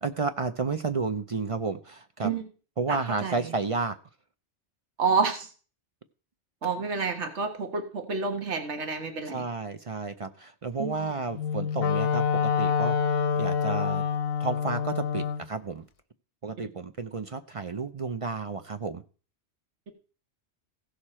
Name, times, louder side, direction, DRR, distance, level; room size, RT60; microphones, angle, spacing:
voice 1, 0.0-2.3 2.8-4.0 9.3-14.0 14.4-15.8 16.4-19.0, right 4 dB, 40° right, 10 dB, 0.5 m, -32 dB
voice 2, 2.9-3.5 5.0-5.5 6.6-9.4 10.8-11.1, right 5 dB, 80° right, 5 dB, 1.7 m, -29 dB
Wind instrument woodwind instrument, 11.3-15.5, left 6 dB, 60° left, 0.8 m, -26 dB
16.0 x 6.5 x 4.3 m, 0.38 s
omnidirectional pair, 1.2 m